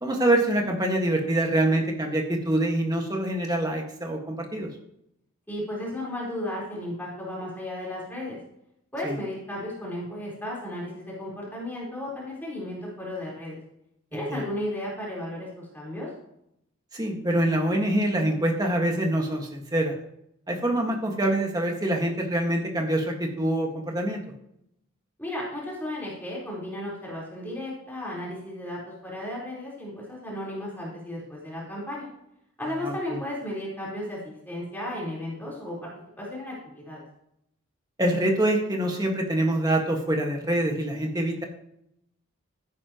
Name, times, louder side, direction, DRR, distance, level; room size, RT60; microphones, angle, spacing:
voice 1, 0.0-4.7 9.0-9.2 14.1-14.4 16.9-19.9 20.5-24.2 32.8-33.2 38.0-41.4, right 1 dB, 20° right, 1 dB, 1.8 m, -25 dB
voice 2, 5.5-8.4 8.9-13.6 14.1-16.1 25.2-32.1 32.6-35.8 36.2-37.0, left 1 dB, 10° left, -6 dB, 4.3 m, -34 dB
15.0 x 10.0 x 3.1 m, 0.76 s
head